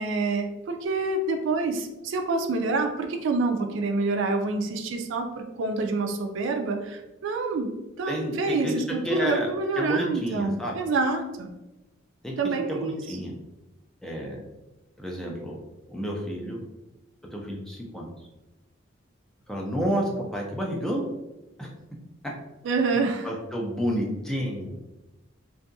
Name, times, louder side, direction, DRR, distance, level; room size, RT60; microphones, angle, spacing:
voice 1, 0.0-11.5 12.4-13.2 22.6-23.3, right 3 dB, 70° right, 5 dB, 0.3 m, -27 dB
voice 2, 8.1-8.7 9.0-9.5 9.8-10.8 12.2-13.3 14.0-14.4 15.0-15.6 15.9-16.6 17.3-18.1 19.5-21.1 21.6-21.7 22.2-22.3 23.2-24.7, equal, 5° left, -2 dB, 0.4 m, -30 dB
2.6 x 2.3 x 2.6 m, 1.0 s
head